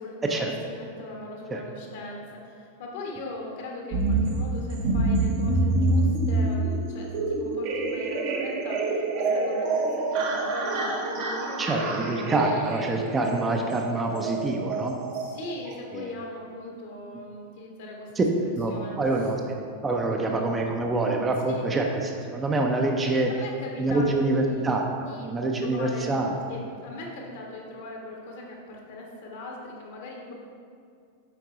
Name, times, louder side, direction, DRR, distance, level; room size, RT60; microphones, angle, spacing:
voice 1, 0.0-12.5 15.2-18.1 18.7-19.3 20.1-20.4 21.5-21.7 23.3-24.7 25.0-26.2 26.5-30.3, left 2 dB, 55° left, -1 dB, 1.3 m, -39 dB
sound 1, 3.9-15.7, right 2 dB, 45° right, 0.9 m, -27 dB
voice 2, 11.6-15.0 15.9-16.1 18.2-18.3 18.5-18.7 19.0-19.6 19.8-21.8 22.2-23.3 23.8-26.3, right 2 dB, 15° right, 1 dB, 0.7 m, -26 dB
7.6 x 4.5 x 4.2 m, 2.3 s
figure-of-eight pair, 90°, 0 cm